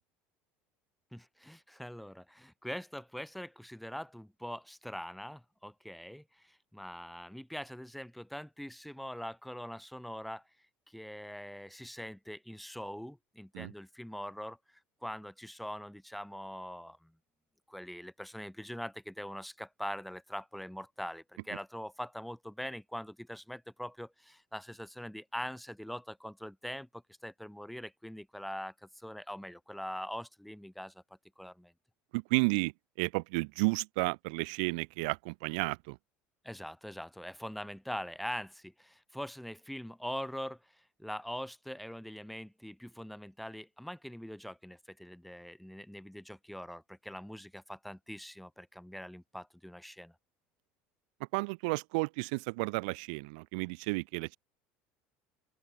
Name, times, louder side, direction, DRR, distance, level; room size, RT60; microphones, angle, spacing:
voice 1, 1.1-10.4 10.9-17.1 17.7-31.0 31.4-31.7 36.4-50.1, equal, ahead, 3.0 m, -43 dB
voice 2, 32.1-32.7 33.0-36.0 51.3-54.4, right 29 dB, 85° right, 3.0 m, -32 dB
open air
cardioid pair, 145°, 4 cm